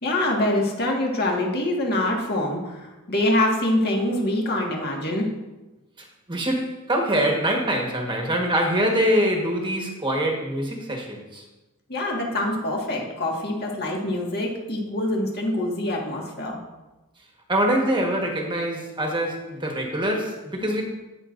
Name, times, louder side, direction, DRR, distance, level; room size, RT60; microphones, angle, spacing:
voice 1, 0.0-5.3 11.9-16.6, left 1 dB, 45° left, -1 dB, 1.7 m, -25 dB
voice 2, 6.0-11.4 17.5-20.8, right 1 dB, 20° right, 0 dB, 1.3 m, -24 dB
17.0 x 6.1 x 2.6 m, 1.1 s
head